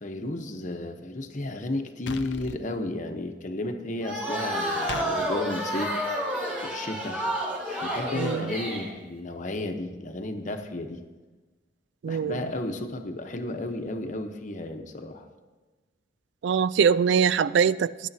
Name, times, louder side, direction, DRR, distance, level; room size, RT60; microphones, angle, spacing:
voice 1, 0.0-6.0 6.6-7.2 7.8-11.0 12.0-15.2, left 2 dB, 45° left, 6 dB, 0.9 m, -33 dB
sound 1, 2.1-2.6 4.9-5.1, left 5 dB, 75° left, 0.5 m, -35 dB
sound 2, 4.0-8.9, equal, 10° right, 3.7 m, -30 dB
voice 2, 8.1-8.6 12.0-12.4 16.4-18.1, right 7 dB, 75° right, 18 dB, 0.3 m, -23 dB
19.0 x 9.9 x 2.8 m, 1.3 s
head